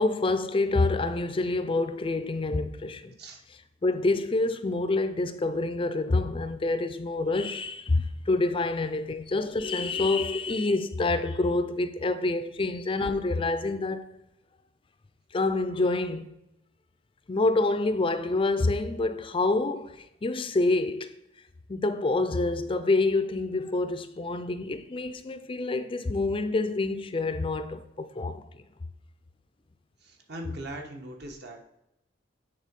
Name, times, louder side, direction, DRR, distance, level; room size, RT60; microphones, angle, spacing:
voice 1, 0.0-3.1 3.8-14.1 15.3-16.3 17.3-21.1 21.7-28.5, left 2 dB, 30° left, 0.4 m, -27 dB
voice 2, 30.0-31.6, right 1 dB, 60° right, 1.3 m, -40 dB
9.0 x 4.0 x 5.2 m
head